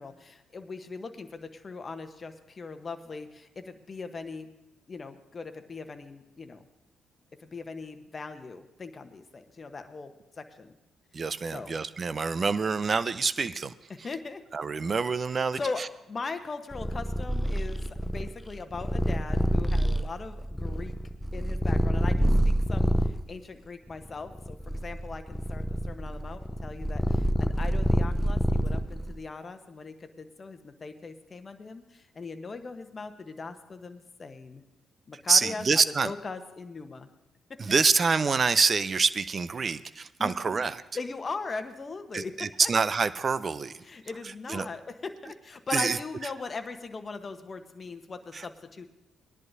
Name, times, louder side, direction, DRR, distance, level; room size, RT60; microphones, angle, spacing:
voice 1, 0.0-4.5 4.9-6.7 7.4-10.8 11.5-11.8 13.9-14.4 15.6-20.9 21.3-34.6 35.1-37.1 37.5-37.8 40.2-40.6 40.9-42.7 43.8-48.9, left 4 dB, 40° left, 7 dB, 1.0 m, -40 dB
voice 2, 11.1-13.7 14.5-15.9 35.3-36.1 37.6-40.8 42.1-43.8 44.5-44.7 45.7-46.0 48.3-48.4, right 5 dB, 45° right, 15 dB, 0.5 m, -26 dB
Purr, 16.7-23.2 23.9-29.1, equal, 5° left, 0.7 m, -27 dB
19.5 x 10.5 x 2.7 m, 0.91 s
hypercardioid pair, 45°, 0 cm